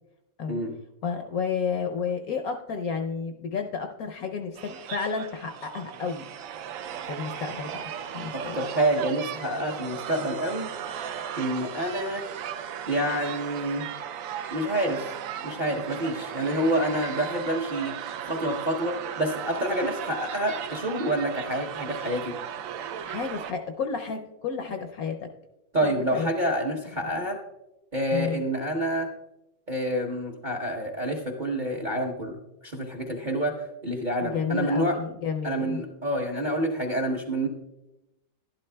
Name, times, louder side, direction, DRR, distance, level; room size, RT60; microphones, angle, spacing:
voice 1, 1.0-6.3 7.1-7.8 8.1-8.6 23.0-25.3 25.8-26.3 28.1-28.4 34.2-35.8, left 5 dB, 65° left, 6 dB, 0.9 m, -31 dB
sound 1, 4.5-23.5, right 9 dB, 80° right, 0.7 m, -36 dB
voice 2, 8.3-10.7 11.4-12.3 12.9-13.9 14.5-15.1 15.4-17.9 18.2-22.3 25.7-27.4 27.9-29.1 29.7-32.3 32.6-35.0 35.4-37.5, right 1 dB, 40° right, 2 dB, 0.7 m, -28 dB
11.5 x 11.5 x 2.2 m, 0.92 s
omnidirectional pair, 2.0 m